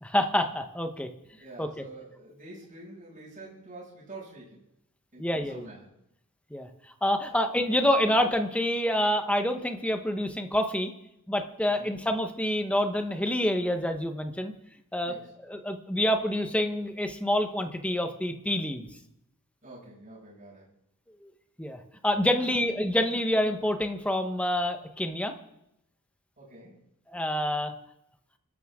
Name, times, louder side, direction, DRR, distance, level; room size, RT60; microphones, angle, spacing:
voice 1, 0.0-1.1 1.6-1.8 5.2-5.7 6.5-6.7 7.0-10.9 11.3-14.5 14.9-15.1 15.5-18.9 21.2-21.3 21.6-25.3 27.1-27.7, left 1 dB, 5° left, 6 dB, 1.1 m, -27 dB
voice 2, 1.4-4.6 5.1-5.9 7.3-7.4 11.7-11.9 15.0-15.3 19.6-20.6 26.4-26.8, right 2 dB, 40° right, -8 dB, 6.6 m, -47 dB
26.0 x 12.5 x 3.7 m, 0.82 s
head